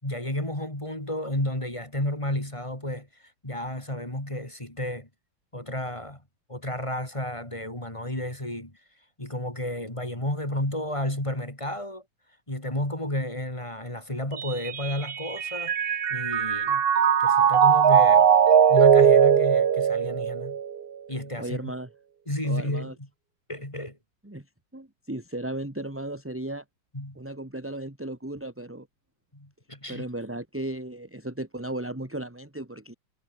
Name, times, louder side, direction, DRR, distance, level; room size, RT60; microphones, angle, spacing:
voice 1, 0.0-5.1 5.5-6.2 6.5-8.8 9.2-12.0 12.5-15.7 16.1-16.8 17.2-18.3 18.7-20.6 21.1-21.7 22.3-23.1 23.5-24.0 26.9-27.2 29.3-30.0, left 1 dB, 15° left, 4.2 m, -32 dB
Mallet percussion, 14.4-20.8, right 8 dB, 55° right, 0.6 m, -20 dB
voice 2, 21.4-21.9 22.4-22.9 24.2-24.4 24.7-26.6 27.2-28.9 29.9-32.9, right 1 dB, 5° right, 2.2 m, -35 dB
omnidirectional pair, 2.2 m